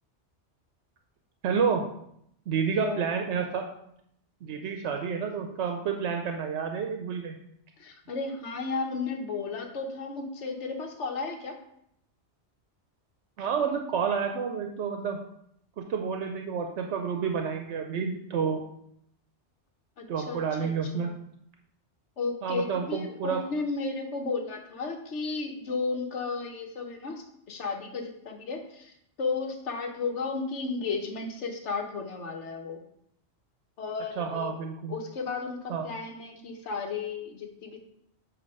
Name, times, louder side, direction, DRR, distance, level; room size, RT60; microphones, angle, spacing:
voice 1, 1.4-1.8 2.5-3.6 4.4-7.4 13.4-15.2 15.9-18.6 20.1-21.1 22.4-23.4 34.2-35.0 35.7-35.8, right 6 dB, 80° right, 4 dB, 0.9 m, -29 dB
voice 2, 2.7-3.1 7.8-11.6 20.0-21.1 22.2-32.8 33.8-34.6 34.9-37.8, left 4 dB, 80° left, 4 dB, 1.2 m, -34 dB
8.4 x 2.8 x 5.3 m, 0.73 s
omnidirectional pair, 1.2 m